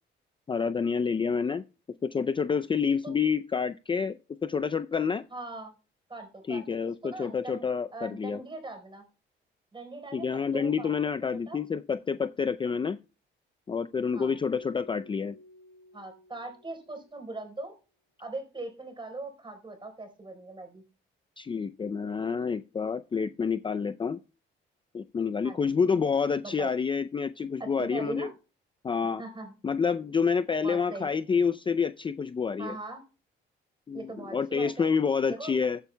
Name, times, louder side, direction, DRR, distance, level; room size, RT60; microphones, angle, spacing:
voice 1, 0.5-1.6 2.0-5.2 6.5-8.4 10.1-13.0 13.7-15.4 21.4-24.2 24.9-28.3 28.8-29.2 29.6-32.8 33.9-35.8, left 6 dB, 25° left, 0.4 m, -28 dB
voice 2, 5.3-5.7 6.1-7.6 7.9-9.0 9.7-11.6 14.1-14.4 15.9-17.7 18.2-20.8 25.4-25.8 26.4-26.7 27.6-28.3 29.2-29.5 30.6-31.1 32.6-33.0 33.9-34.9 35.3-35.5, right 2 dB, 25° right, 4.1 m, -40 dB
Keyboard (musical), 14.5-17.4, left 2 dB, 45° left, 2.0 m, -54 dB
15.0 x 9.2 x 2.2 m
cardioid pair, 90°, 20 cm